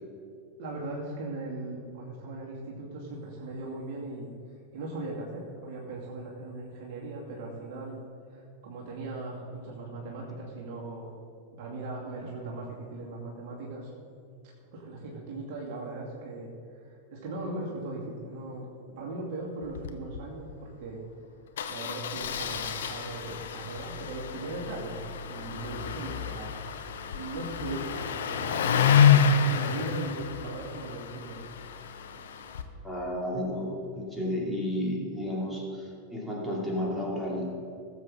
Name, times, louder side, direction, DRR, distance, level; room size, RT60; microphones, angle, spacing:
voice 1, 0.6-4.3 4.7-7.9 8.3-11.1 11.5-13.9 14.7-16.5 17.1-18.7 19.0-21.1 21.7-26.8 27.1-31.5, right 2 dB, 45° right, -4 dB, 2.5 m, -38 dB
Engine starting, 19.6-19.9 20.1-20.2 20.5-20.7 21.6-32.6, left 7 dB, 60° left, 0.8 m, -28 dB
voice 2, 32.8-37.5, left 1 dB, ahead, -4 dB, 3.0 m, -32 dB
18.5 x 7.9 x 3.8 m, 2.4 s
figure-of-eight pair, 90°, 0 cm